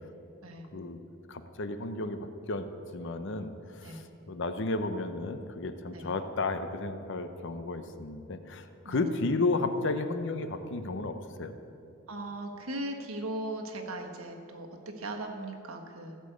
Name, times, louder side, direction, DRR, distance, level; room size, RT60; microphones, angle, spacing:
voice 1, 1.3-2.7 2.9-11.5, left 3 dB, 60° left, 9 dB, 0.8 m, -33 dB
voice 2, 12.1-16.2, right 1 dB, 90° right, 3 dB, 1.5 m, -38 dB
16.0 x 5.4 x 8.0 m, 2.8 s
head